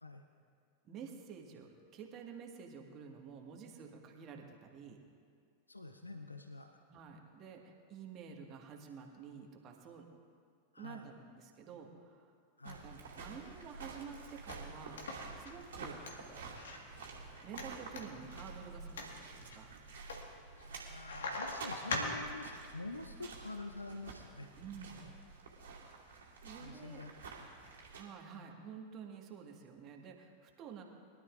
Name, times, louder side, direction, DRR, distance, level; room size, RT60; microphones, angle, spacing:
voice 1, 0.8-5.0 6.9-10.1 10.8-12.3 12.6-15.0 15.4-16.0 16.4-16.5 17.4-19.7 23.2-23.3 24.6-25.0 26.4-27.0 27.9-30.8, right 6 dB, 35° right, 2 dB, 1.7 m, -50 dB
voice 2, 5.7-6.8 10.7-11.1 12.6-12.8 15.8-16.0 20.6-24.5 26.6-27.1 27.4-27.5, left 2 dB, 80° left, 6 dB, 0.7 m, -47 dB
sound 1, 12.6-28.0, right 4 dB, 60° right, 2.3 m, -50 dB
sound 2, 13.9-22.6, left 2 dB, 65° left, 1.7 m, -44 dB
22.0 x 12.0 x 2.6 m, 2.2 s
figure-of-eight pair, 90°, 0 cm